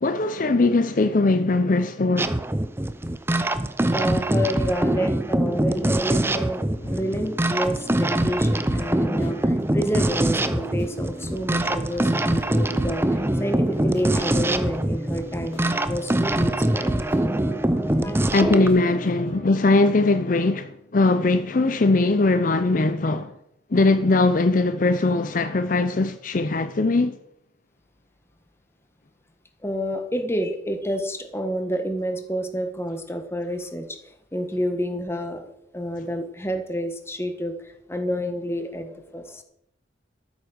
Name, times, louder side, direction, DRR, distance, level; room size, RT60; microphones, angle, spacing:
voice 1, 0.0-2.4 18.3-23.4 23.7-27.2, left 3 dB, 50° left, 0.6 m, -20 dB
sound 1, 2.2-18.7, right 1 dB, 15° right, 0.7 m, -23 dB
voice 2, 3.9-6.6 6.9-17.0 18.0-18.3 21.3-21.4 29.6-35.5 35.7-39.4, equal, 15° left, 1.5 m, -29 dB
sound 2, 6.7-19.4, right 1 dB, 35° left, 3.9 m, -36 dB
13.5 x 8.3 x 6.3 m
head